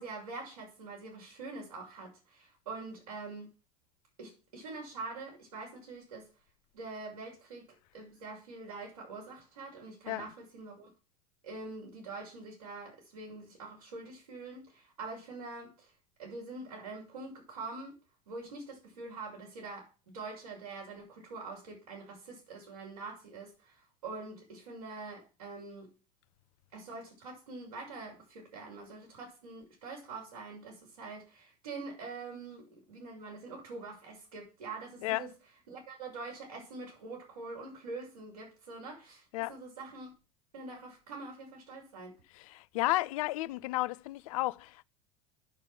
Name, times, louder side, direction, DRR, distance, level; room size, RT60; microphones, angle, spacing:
voice 1, 0.0-3.5 4.2-6.3 6.7-10.9 11.4-15.9 16.2-18.0 18.3-25.9 26.7-35.3 35.7-39.2 39.5-40.1 40.5-42.1, right 3 dB, 85° right, 6.3 m, -45 dB
voice 2, 42.3-44.8, left 19 dB, 65° left, 0.6 m, -33 dB
9.8 x 6.6 x 7.6 m
hypercardioid pair, 85°, 19 cm